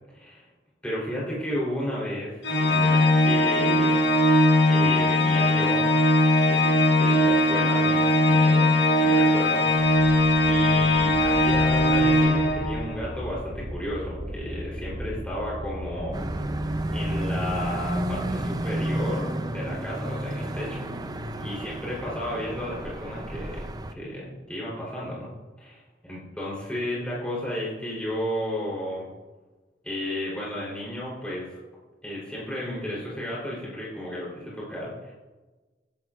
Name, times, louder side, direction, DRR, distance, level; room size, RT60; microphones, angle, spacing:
voice 1, 0.1-0.5 0.8-2.4 2.7-4.0 4.7-5.9 6.5-16.2 16.9-19.3 19.5-20.9 21.4-25.3 25.6-25.8 26.1-29.1 29.8-31.6 32.0-35.1, equal, 5° left, -7 dB, 3.6 m, -33 dB
Organ, 2.4-13.0, left 1 dB, 75° left, 1.3 m, -20 dB
sound 1, 9.7-18.4, equal, 50° right, 3.7 m, -36 dB
sound 2, 16.1-23.9, right 1 dB, 25° right, 0.6 m, -31 dB
16.0 x 11.0 x 2.5 m, 1.2 s
head